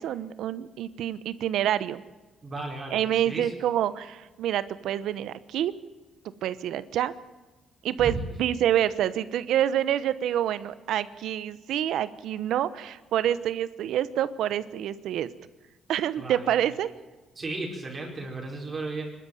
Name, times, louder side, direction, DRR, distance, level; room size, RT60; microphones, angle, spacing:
voice 1, 0.0-2.0 2.9-5.7 6.4-7.1 7.8-15.3 15.9-16.9, right 11 dB, 80° right, 15 dB, 1.0 m, -27 dB
voice 2, 2.4-3.5 8.0-8.2 16.2-16.5 17.4-19.0, right 2 dB, 35° right, -1 dB, 4.9 m, -35 dB
23.5 x 12.5 x 9.2 m, 1.2 s
cardioid pair, 90°, 0 cm